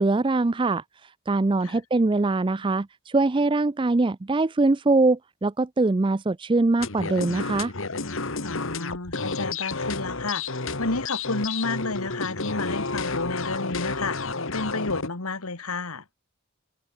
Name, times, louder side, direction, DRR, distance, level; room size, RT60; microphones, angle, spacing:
voice 1, 0.0-7.7, right 2 dB, 20° right, 0.4 m, -23 dB
sound 1, 6.8-15.1, left 3 dB, 60° left, 1.9 m, -31 dB
voice 2, 8.4-16.0, left 3 dB, 80° left, 2.1 m, -31 dB
open air
head